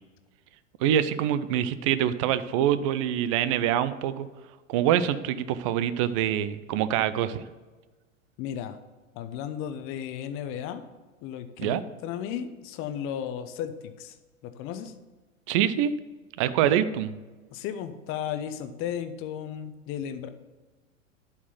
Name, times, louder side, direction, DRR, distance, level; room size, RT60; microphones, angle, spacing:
voice 1, 0.8-4.3 4.7-7.5 11.6-11.8 15.5-15.9 16.4-17.1, right 10 dB, 25° right, 14 dB, 0.3 m, -25 dB
voice 2, 8.4-8.8 9.1-10.8 11.2-14.2 14.4-14.9 16.6-16.7 17.5-20.3, left 9 dB, 30° left, 10 dB, 0.7 m, -34 dB
11.0 x 4.4 x 5.8 m, 1.3 s
figure-of-eight pair, 95°, 40 cm